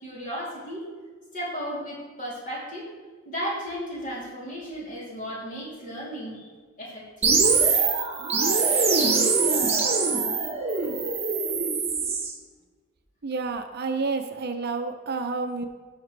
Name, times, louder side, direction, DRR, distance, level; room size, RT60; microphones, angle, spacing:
voice 1, 0.0-0.9 1.3-2.9 3.2-6.5 6.8-7.3 11.6-12.1, equal, 40° left, -6 dB, 3.1 m, -35 dB
sound 1, 7.2-12.3, right 4 dB, 30° right, 1.2 m, -23 dB
voice 2, 13.2-15.7, right 4 dB, 50° right, 6 dB, 0.6 m, -29 dB
15.5 x 5.8 x 3.3 m, 1.4 s
head